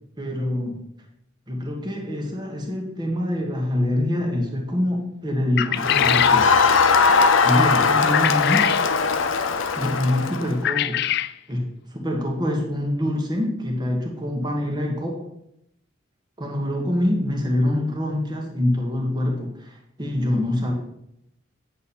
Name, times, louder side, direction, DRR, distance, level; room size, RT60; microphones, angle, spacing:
voice 1, 0.2-0.8 1.5-6.5 7.4-8.7 9.8-11.0 11.5-15.2 16.4-20.7, left 1 dB, 20° right, 0 dB, 1.4 m, -25 dB
sound 1, 5.6-6.4 8.1-8.9 10.6-11.3, left 12 dB, 55° left, 0.4 m, -23 dB
Crowd, 5.8-10.6, left 5 dB, 85° left, 0.7 m, -19 dB
8.6 x 6.3 x 4.3 m, 0.78 s
head